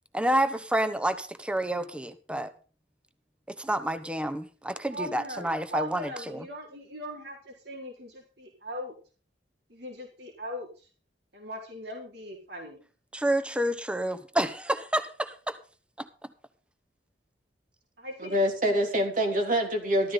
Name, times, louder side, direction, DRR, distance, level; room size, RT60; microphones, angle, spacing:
voice 1, 0.1-2.5 3.5-6.4 13.1-15.6 16.0-16.1, right 1 dB, 5° right, 1.0 m, -29 dB
voice 2, 4.9-8.9 9.7-10.9 11.3-12.8 18.0-18.4 18.6-18.9, equal, 65° right, 4.6 m, -40 dB
voice 3, 18.2-20.1, equal, 50° right, 3.2 m, -25 dB
14.0 x 14.0 x 3.9 m
head